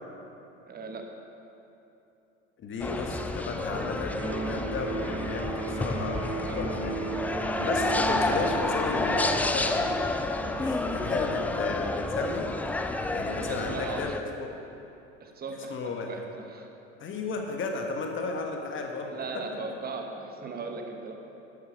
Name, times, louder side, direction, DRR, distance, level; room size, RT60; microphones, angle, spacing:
voice 1, 0.7-1.0 13.4-14.1 15.2-15.7 16.1-16.7 19.1-21.1, right 4 dB, 25° right, 3 dB, 1.3 m, -38 dB
voice 2, 2.6-7.0 7.6-10.0 10.5-12.5 13.0-14.5 15.7-16.1 17.0-19.4, left 4 dB, 30° left, 2 dB, 1.6 m, -34 dB
sound 1, 2.8-14.2, left 2 dB, 5° left, 0.3 m, -30 dB
Electric guitar, 4.2-12.1, right 4 dB, 45° right, 2.6 m, -36 dB
12.0 x 8.4 x 5.3 m, 2.9 s
figure-of-eight pair, 70°, 37 cm